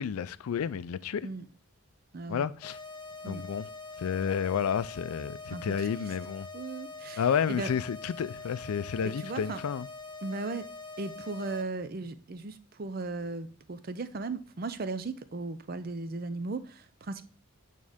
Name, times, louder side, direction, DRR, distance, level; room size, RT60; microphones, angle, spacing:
voice 1, 0.0-1.3 2.3-2.8 3.3-3.7 4.0-6.5 7.2-9.9, left 7 dB, 90° left, 0.4 m, -31 dB
voice 2, 2.1-2.5 3.2-3.4 5.5-5.9 6.5-7.7 9.0-9.6 10.2-10.7 11.0-17.2, right 3 dB, 45° right, 0.5 m, -37 dB
sound 1, 2.6-11.6, left 3 dB, 20° left, 0.6 m, -44 dB
8.5 x 3.7 x 3.5 m
head